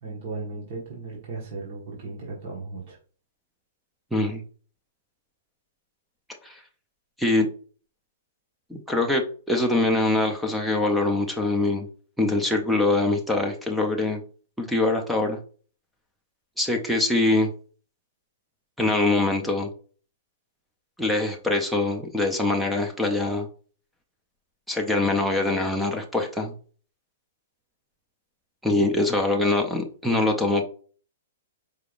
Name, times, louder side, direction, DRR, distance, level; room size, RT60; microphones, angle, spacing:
voice 1, 0.0-3.0 28.8-28.9, right 3 dB, 40° right, -4 dB, 1.3 m, -36 dB
voice 2, 4.1-4.4 6.4-6.6 7.2-7.5 8.7-11.9 12.2-14.2 14.6-15.4 16.6-17.5 18.8-19.7 21.0-23.5 24.7-26.5 28.6-30.6, left 2 dB, ahead, 3 dB, 0.5 m, -23 dB
4.7 x 3.4 x 2.4 m, 0.41 s
hypercardioid pair, 165°, 0 cm